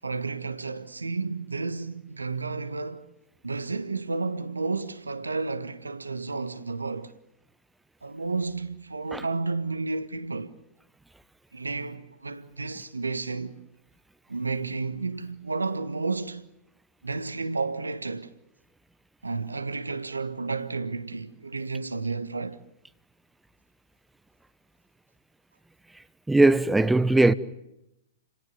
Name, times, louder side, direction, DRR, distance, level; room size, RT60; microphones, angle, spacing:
voice 1, 0.0-3.1 3.4-7.1 8.0-10.5 11.5-13.6 14.3-16.4 17.0-18.3 19.2-22.6, right 3 dB, 85° right, 1.5 m, -31 dB
voice 2, 26.3-27.3, right 2 dB, 5° right, 1.0 m, -19 dB
29.5 x 17.5 x 9.7 m
figure-of-eight pair, 105°, 0 cm